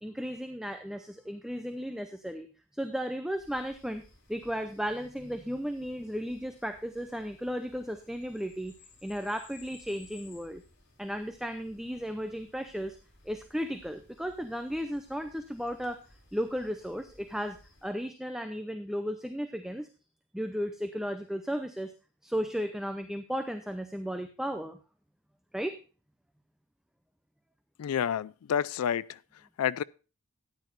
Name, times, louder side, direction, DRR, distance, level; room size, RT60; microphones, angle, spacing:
voice 1, 0.0-4.0 4.3-8.7 9.0-10.6 11.0-13.0 13.2-16.0 16.3-19.9 20.3-21.9 22.2-24.8 25.5-25.8, equal, ahead, 0.5 m, -35 dB
sound 1, 3.3-17.9, left 2 dB, 55° left, 5.1 m, -59 dB
voice 2, 27.8-29.2 29.6-29.8, left 8 dB, 90° left, 0.4 m, -29 dB
13.5 x 9.5 x 2.5 m
head